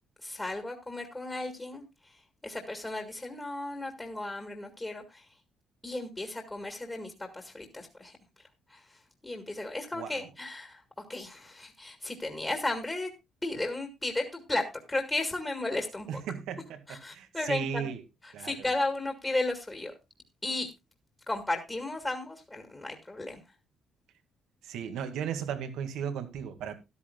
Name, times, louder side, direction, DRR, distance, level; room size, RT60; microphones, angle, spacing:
voice 1, 0.2-5.3 5.8-10.8 11.1-13.1 13.4-16.2 16.9-17.9 18.2-19.9 20.4-20.7 21.3-23.4, left 2 dB, 10° left, 1.8 m, -35 dB
voice 2, 16.1-18.0 18.3-18.7 24.6-26.7, right 8 dB, 80° right, 2.0 m, -36 dB
13.5 x 12.5 x 2.3 m
cardioid pair, 150°, 0 cm